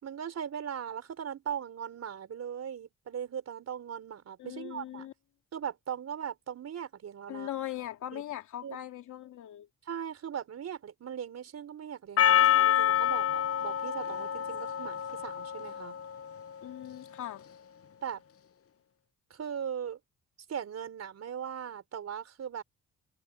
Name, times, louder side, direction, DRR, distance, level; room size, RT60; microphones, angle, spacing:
voice 1, 0.0-5.1 5.5-7.5 8.1-8.2 8.6-8.8 9.9-16.0 18.0-18.2 19.3-20.0 20.5-22.6, right 8 dB, 55° right, 4.7 m, -39 dB
voice 2, 4.4-5.1 7.3-9.7 16.6-17.5, left 12 dB, 75° left, 3.2 m, -40 dB
Percussion, 12.2-16.5, left 11 dB, 50° left, 0.9 m, -27 dB
cardioid pair, 90°, 30 cm